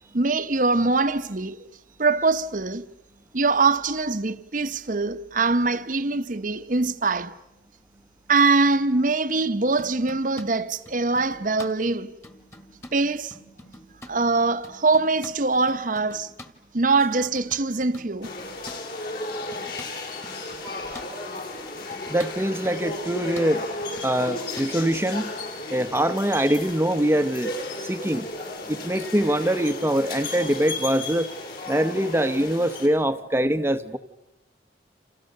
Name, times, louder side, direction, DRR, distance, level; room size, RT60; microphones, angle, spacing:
voice 1, 0.1-1.7 2.0-2.9 3.3-7.3 8.3-12.1 12.9-13.3 14.1-16.3 16.7-18.3, right 3 dB, 45° right, 1.0 m, -23 dB
sound 1, 9.8-10.5 10.8-11.7 12.2-13.0 13.3-14.1 14.6-16.5 17.0-18.8 19.3-21.1 21.7-24.7, left 1 dB, 15° left, 1.9 m, -46 dB
sound 2, 18.2-32.9, left 2 dB, 55° left, 5.7 m, -34 dB
voice 2, 22.1-23.7 24.0-25.3 25.7-27.5 27.8-28.3 28.7-31.3 31.7-34.0, right 1 dB, 15° right, 0.9 m, -23 dB
29.5 x 28.0 x 6.7 m
head